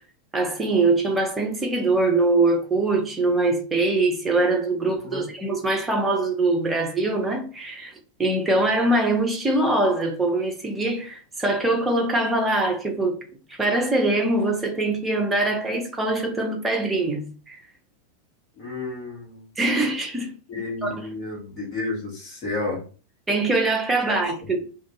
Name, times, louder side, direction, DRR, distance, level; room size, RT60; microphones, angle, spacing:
voice 1, 0.3-7.9 8.2-13.2 13.6-17.6 19.6-20.3 20.8-21.1 23.3-24.6, right 2 dB, 10° right, 0.8 m, -23 dB
voice 2, 18.6-19.4 20.5-22.8 24.1-24.2, left 2 dB, 35° left, 1.5 m, -31 dB
2.7 x 2.6 x 3.4 m
figure-of-eight pair, 90°, 0 cm